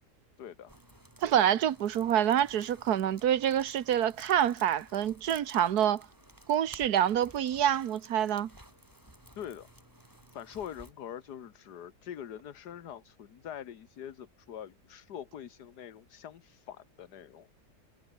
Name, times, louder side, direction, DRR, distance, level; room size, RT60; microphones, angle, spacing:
voice 1, 0.4-0.7 9.4-9.7 10.3-17.5, left 9 dB, 75° left, 1.8 m, -44 dB
sound 1, 0.7-10.9, right 1 dB, 10° right, 3.5 m, -55 dB
voice 2, 1.2-6.0 6.5-8.5, right 10 dB, 70° right, 1.5 m, -27 dB
omnidirectional pair, 1.7 m